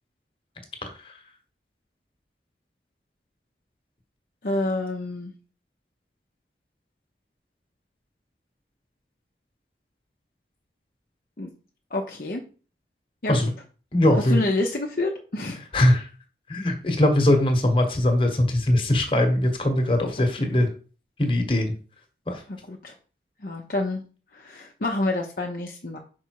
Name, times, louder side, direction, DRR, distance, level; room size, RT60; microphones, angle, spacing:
voice 1, 0.8-1.1 13.3-13.5 13.9-14.4 15.7-16.1 16.5-20.7 21.2-21.7 22.3-22.4, left 1 dB, 30° left, 5 dB, 1.3 m, -21 dB
voice 2, 4.4-5.3 11.4-11.5 11.9-12.4 13.2-13.5 14.2-15.9 20.2-20.5 22.5-22.9 23.4-24.0 24.3-26.0, left 2 dB, 50° left, 1 dB, 0.8 m, -28 dB
5.5 x 4.7 x 4.7 m, 0.38 s
head